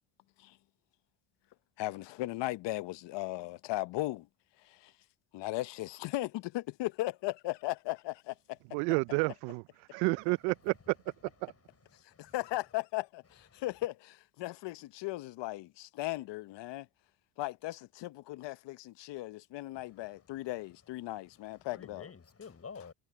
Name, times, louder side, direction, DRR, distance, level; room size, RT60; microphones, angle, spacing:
voice 1, 1.8-4.3 4.6-4.9 5.3-8.6 12.0-16.9 17.4-22.1, left 17 dB, 65° left, 1.0 m, -37 dB
voice 2, 8.7-9.6 9.9-11.0 11.4-11.5, right 29 dB, 85° right, 0.6 m, -30 dB
voice 3, 11.9-12.4 13.5-13.7 19.7-20.3 21.3-22.9, left 5 dB, 30° left, 6.5 m, -51 dB
supercardioid pair, 80°, 46 cm